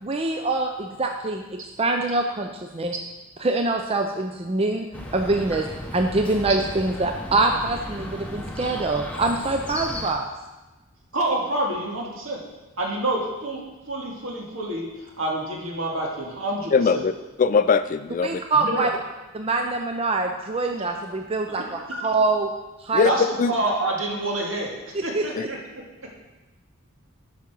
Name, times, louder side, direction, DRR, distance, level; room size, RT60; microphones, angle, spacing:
voice 1, 0.0-2.9 3.4-4.9 5.1-5.6 5.9-10.3 18.2-18.9 19.3-22.5 22.8-23.1 24.9-25.5, right 3 dB, 30° right, 4 dB, 0.5 m, -24 dB
Chirp tweet, 4.9-10.1, left 1 dB, 5° left, 0.9 m, -35 dB
voice 2, 11.1-12.4 12.8-13.6 13.9-17.0 18.5-18.9 21.6-21.7 23.0-24.7 25.0-26.1, right 1 dB, 70° right, -1 dB, 2.1 m, -27 dB
voice 3, 16.7-17.1 17.4-18.4 22.9-23.1 23.4-23.5 25.3-25.5, left 5 dB, 40° left, 12 dB, 0.3 m, -20 dB
8.5 x 5.7 x 6.0 m, 1.1 s
head